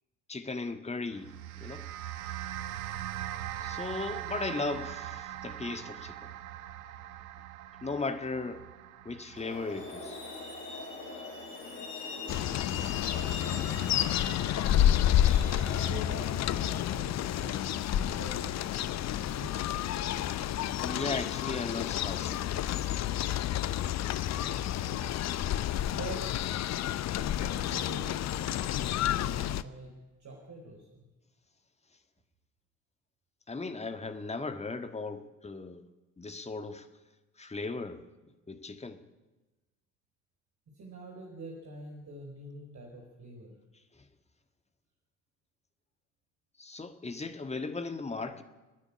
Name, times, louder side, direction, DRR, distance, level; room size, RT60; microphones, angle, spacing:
voice 1, 0.3-1.3 1.6-1.8 3.6-6.2 7.8-8.6 9.0-10.2 20.7-22.6 33.5-35.8 36.2-36.8 37.4-38.0 38.5-39.0 46.6-48.4, left 3 dB, 15° left, 1.7 m, -37 dB
sound 1, 1.1-11.7, right 12 dB, 70° right, 0.9 m, -41 dB
Truck, 9.4-16.8, left 3 dB, 60° left, 5.8 m, -41 dB
sound 2, 12.3-29.6, left 11 dB, 40° left, 0.7 m, -30 dB
voice 2, 13.2-14.0 15.9-18.6 19.3-20.2 24.4-25.1 25.9-26.3 26.8-28.6 29.0-29.9 30.2-31.0 40.7-43.5, right 1 dB, 40° right, 4.7 m, -45 dB
29.5 x 9.8 x 9.9 m
figure-of-eight pair, 55°, 43 cm